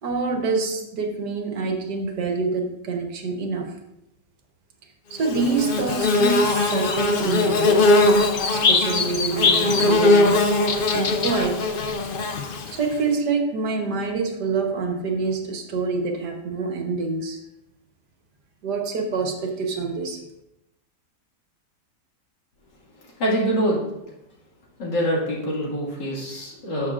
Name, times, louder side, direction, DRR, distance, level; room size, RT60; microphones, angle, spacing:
voice 1, 0.0-3.8 5.1-7.9 8.5-10.5 10.9-11.6 12.7-17.4 18.6-20.2, right 4 dB, 70° right, 3 dB, 1.6 m, -26 dB
Bird / Buzz, 5.2-12.9, left 3 dB, 65° left, 0.5 m, -20 dB
voice 2, 23.2-23.9 24.8-26.9, equal, 80° left, -4 dB, 2.7 m, -24 dB
12.0 x 6.3 x 2.5 m, 0.90 s
omnidirectional pair, 1.8 m